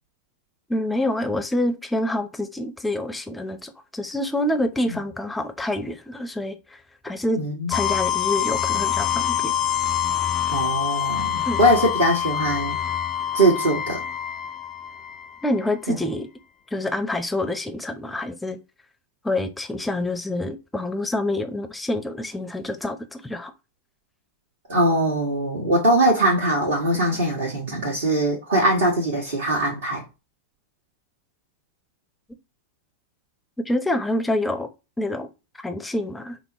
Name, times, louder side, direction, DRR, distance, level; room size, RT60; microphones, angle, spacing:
voice 1, 0.7-6.8 7.0-7.4 7.7-9.5 11.4-11.6 15.4-16.3 16.7-18.6 19.2-23.5 33.7-34.7 35.0-35.3 35.6-36.4, left 1 dB, 5° left, 0.7 m, -27 dB
voice 2, 7.3-7.7 10.5-12.8 13.3-14.0 15.9-16.0 24.7-30.0, right 1 dB, 55° right, 1.5 m, -21 dB
sound 1, 7.7-15.5, left 10 dB, 30° left, 0.3 m, -25 dB
5.2 x 2.1 x 4.4 m
figure-of-eight pair, 90°, 0 cm